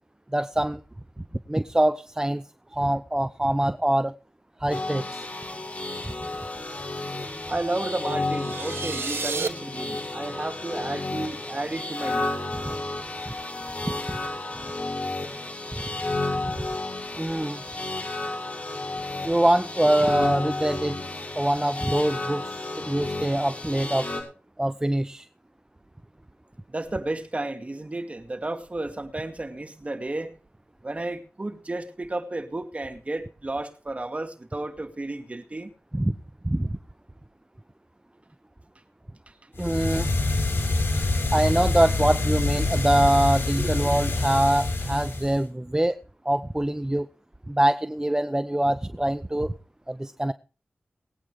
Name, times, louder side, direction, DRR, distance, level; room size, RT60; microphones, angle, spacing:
voice 1, 0.3-0.8 1.5-2.4 2.7-4.1 4.6-5.2 6.0-6.1 13.3-13.4 13.8-14.2 16.4-16.5 17.1-17.6 19.2-21.0 21.3-24.1 24.6-25.3 35.9-36.1 36.4-36.8 39.6-40.1 41.3-46.0 46.2-47.1 47.5-49.5 49.9-50.3, right 1 dB, 15° right, 0.8 m, -24 dB
sound 1, 4.7-24.2, left 2 dB, 35° left, 7.3 m, -32 dB
voice 2, 7.5-12.3 26.7-30.4 30.8-35.7 39.3-39.4 43.6-43.8, right 2 dB, 35° right, 2.4 m, -32 dB
sound 2, 8.3-9.5, right 4 dB, 70° right, 1.4 m, -30 dB
sound 3, 39.5-45.5, left 2 dB, 75° left, 3.7 m, -26 dB
19.5 x 9.1 x 4.9 m
wide cardioid pair, 60°, 4 cm